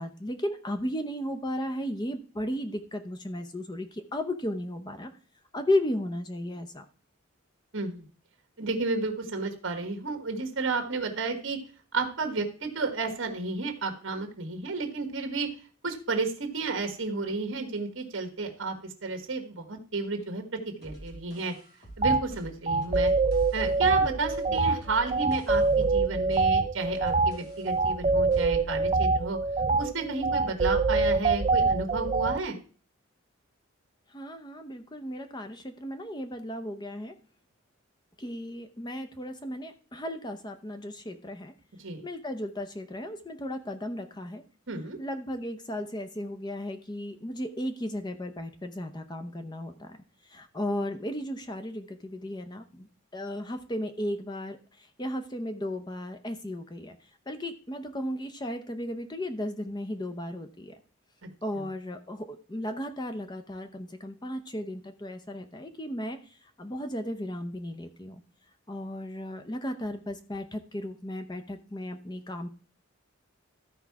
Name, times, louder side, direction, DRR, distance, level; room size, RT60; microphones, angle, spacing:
voice 1, 0.0-5.1 5.5-6.9 34.1-37.2 38.2-41.5 42.0-44.4 45.0-50.0 50.3-52.9 53.1-57.0 57.3-60.8 61.4-66.2 66.6-68.2 68.7-72.5, left 1 dB, 20° left, 8 dB, 0.6 m, -35 dB
voice 2, 7.7-8.0 8.6-11.6 11.9-15.5 15.8-18.7 19.0-20.4 20.8-21.5 22.0-23.1 23.5-29.4 29.8-32.6 41.8-42.0 44.7-45.0, right 3 dB, 60° right, 4 dB, 1.5 m, -32 dB
sound 1, 20.8-28.6, right 1 dB, 50° left, 3.4 m, -46 dB
sound 2, 22.0-22.2 22.7-32.4, right 3 dB, 30° right, 0.5 m, -25 dB
13.5 x 4.7 x 4.7 m, 0.38 s
head